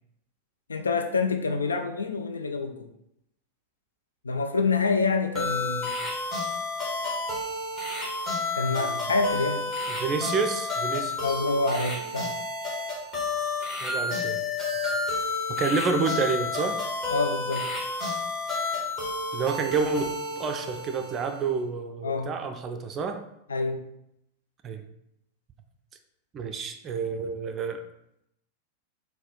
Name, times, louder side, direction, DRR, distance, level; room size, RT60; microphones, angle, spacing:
voice 1, 0.7-2.9 4.2-5.9 8.5-9.7 11.2-12.3 17.1-17.7 22.0-22.3 23.5-23.9, left 4 dB, 75° left, 7 dB, 0.3 m, -27 dB
sound 1, 5.3-21.5, left 3 dB, 20° left, 1.4 m, -30 dB
voice 2, 8.7-9.1 9.9-11.4 13.8-14.4 15.5-16.8 19.3-23.2 24.6-24.8 26.3-27.9, right 5 dB, 30° right, 6 dB, 0.4 m, -29 dB
4.1 x 2.2 x 3.6 m, 0.79 s
figure-of-eight pair, 90°, 0 cm